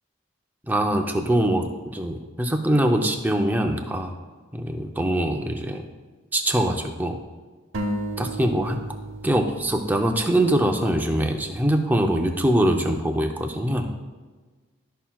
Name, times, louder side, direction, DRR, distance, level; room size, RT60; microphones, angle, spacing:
voice 1, 0.7-4.1 4.5-5.9 6.3-7.2 8.2-8.8 9.2-13.9, right 1 dB, 10° right, 3 dB, 0.5 m, -23 dB
sound 1, 7.7-11.4, right 1 dB, 70° right, 0.9 m, -34 dB
13.0 x 5.6 x 2.3 m, 1.4 s
head